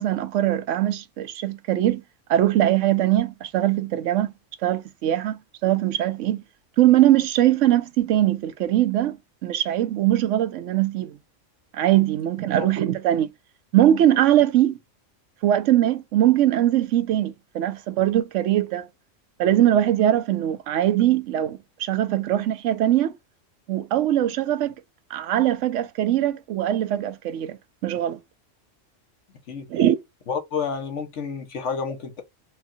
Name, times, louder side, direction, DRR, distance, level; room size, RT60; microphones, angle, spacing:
voice 1, 0.0-2.0 2.3-4.3 4.6-6.4 6.8-11.2 11.7-13.3 13.7-14.8 15.4-18.9 19.4-23.1 23.7-24.7 25.1-27.6 27.8-28.2 29.7-30.0, right 12 dB, 75° right, 0.9 m, -21 dB
voice 2, 30.3-32.2, left 6 dB, 70° left, 1.3 m, -30 dB
4.5 x 2.3 x 2.6 m
omnidirectional pair, 1.3 m